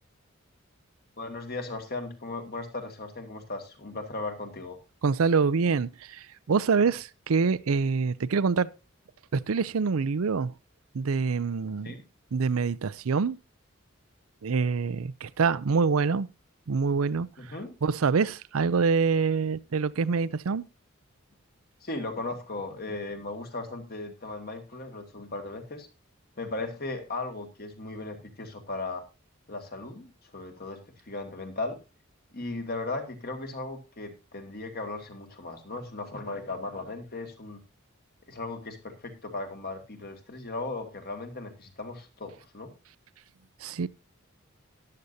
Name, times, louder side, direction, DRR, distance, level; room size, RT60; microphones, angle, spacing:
voice 1, 1.2-4.8 11.8-12.0 17.4-17.7 21.8-25.9 26.4-29.0 29.5-31.8 32.3-37.6 38.3-42.7, left 2 dB, 45° left, 2.1 m, -37 dB
voice 2, 5.0-8.7 9.3-10.5 10.9-11.9 12.3-13.4 14.4-16.3 16.7-17.3 17.8-20.6 43.6-43.9, right 5 dB, 85° right, 0.5 m, -25 dB
13.5 x 11.0 x 2.7 m
head